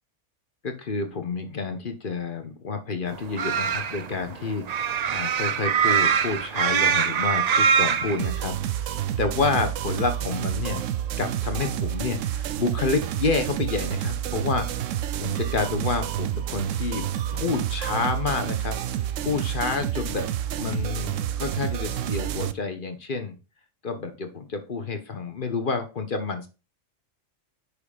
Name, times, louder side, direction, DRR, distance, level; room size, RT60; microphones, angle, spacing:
voice 1, 0.6-10.8 11.2-17.0 17.3-18.7 19.2-20.3 20.6-23.4 23.8-26.5, left 4 dB, 45° left, 7 dB, 1.2 m, -29 dB
sound 1, 3.1-8.3, right 7 dB, 70° right, 0.4 m, -23 dB
sound 2, 8.2-22.5, right 11 dB, 85° right, 1.0 m, -29 dB
9.4 x 3.3 x 5.1 m, 0.31 s
omnidirectional pair, 1.3 m